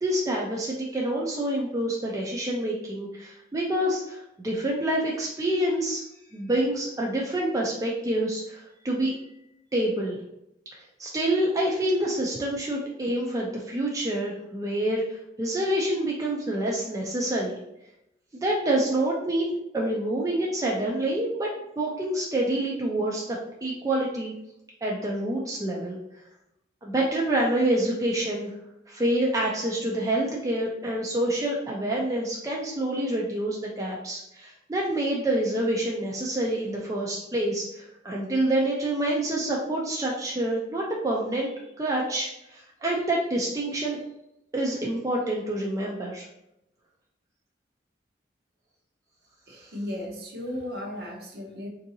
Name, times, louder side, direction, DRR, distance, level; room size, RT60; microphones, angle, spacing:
voice 1, 0.0-6.0 6.3-9.1 9.7-10.2 10.7-17.6 18.3-21.5 21.8-24.3 24.8-26.0 26.8-28.5 28.9-41.5 41.8-44.0 44.5-46.3, right 1 dB, 20° right, -3 dB, 0.4 m, -27 dB
voice 2, 49.5-51.7, left 1 dB, 60° right, 0 dB, 0.8 m, -35 dB
3.6 x 2.6 x 2.7 m, 0.84 s
head